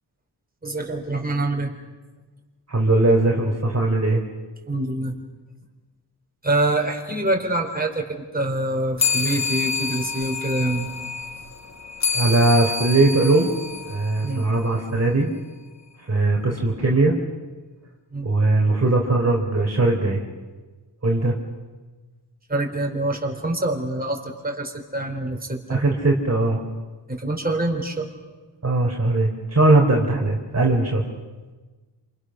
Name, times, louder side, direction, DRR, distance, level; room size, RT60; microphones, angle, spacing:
voice 1, 0.6-1.7 4.7-5.2 6.4-10.9 14.2-14.4 18.1-18.3 22.5-25.8 27.1-28.1, right 2 dB, 20° right, 2 dB, 4.5 m, -25 dB
voice 2, 2.7-4.2 12.1-13.5 13.8-15.3 16.1-17.2 18.2-20.2 21.0-21.3 25.7-26.6 28.6-31.0, right 2 dB, 35° right, 0 dB, 3.8 m, -19 dB
sound 1, 9.0-14.8, left 4 dB, 40° left, 1.3 m, -28 dB
28.0 x 28.0 x 6.4 m, 1.3 s
wide cardioid pair, 90°, 43 cm